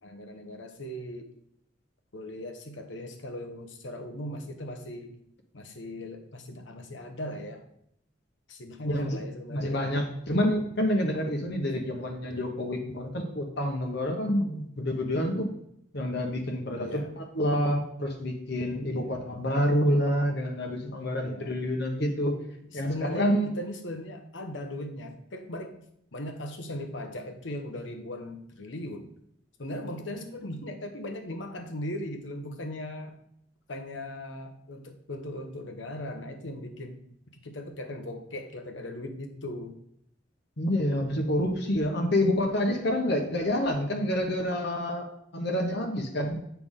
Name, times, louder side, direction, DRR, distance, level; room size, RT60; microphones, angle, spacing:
voice 1, 0.0-1.3 2.1-5.2 5.5-7.6 8.5-9.8 16.7-17.1 18.9-19.2 21.2-21.6 22.7-25.8 26.1-29.1 29.6-33.2 33.7-39.8, left 1 dB, 90° left, 5 dB, 1.1 m, -38 dB
voice 2, 8.8-9.2 9.5-15.5 15.9-22.4 22.7-23.6 40.6-45.1 45.3-46.4, left 1 dB, 65° left, 1 dB, 1.2 m, -28 dB
8.2 x 5.8 x 3.7 m, 0.72 s
head